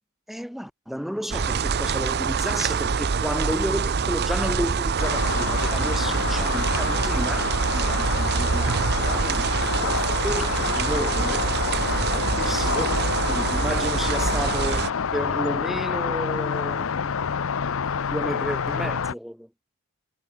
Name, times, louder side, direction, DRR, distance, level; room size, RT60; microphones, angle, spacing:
voice 1, 0.3-11.5 12.1-17.2 17.9-19.5, equal, ahead, 2.4 m, -32 dB
sound 1, 1.3-14.9, right 5 dB, 50° right, 0.6 m, -25 dB
sound 2, 5.0-19.1, left 6 dB, 65° left, 0.6 m, -28 dB
head